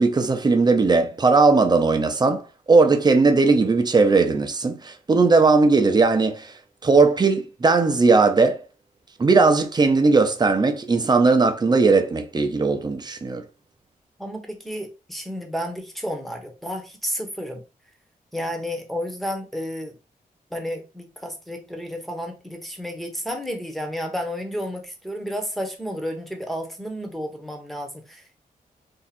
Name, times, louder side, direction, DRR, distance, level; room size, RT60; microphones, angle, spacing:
voice 1, 0.0-6.6 6.8-8.6 9.2-13.4, right 3 dB, 30° right, 0.6 m, -18 dB
voice 2, 14.2-17.6 18.3-19.9 20.5-28.4, equal, ahead, 0.9 m, -31 dB
2.7 x 2.4 x 4.2 m
wide cardioid pair, 105°, 15 cm